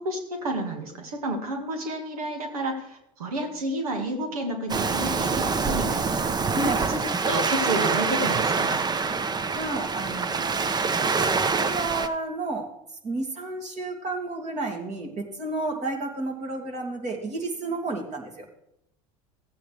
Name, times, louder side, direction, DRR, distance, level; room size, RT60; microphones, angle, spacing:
voice 1, 0.0-6.1 6.6-8.9, right 1 dB, 85° right, 4 dB, 1.8 m, -31 dB
Waves surf, 4.7-12.1, right 4 dB, 20° right, 0.8 m, -25 dB
voice 2, 6.5-6.9 9.6-10.7 11.1-12.7 13.0-18.4, right 2 dB, 40° right, 2 dB, 2.6 m, -31 dB
15.0 x 8.5 x 3.3 m, 0.78 s
hypercardioid pair, 85°, 18 cm